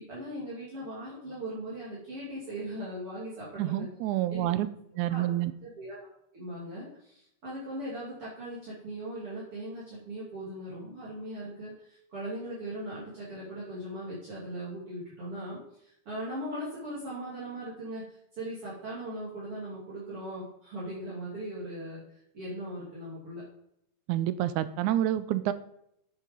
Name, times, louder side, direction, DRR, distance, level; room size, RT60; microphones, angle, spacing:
voice 1, 0.1-3.9 4.3-4.4 5.1-5.2 5.8-6.1 6.3-22.0 22.3-23.4, right 1 dB, 50° right, -8 dB, 3.7 m, -39 dB
voice 2, 3.6-4.7 5.0-5.5 24.1-25.5, right 13 dB, 90° right, 13 dB, 2.0 m, -28 dB
8.5 x 7.5 x 5.3 m, 0.75 s
omnidirectional pair, 3.4 m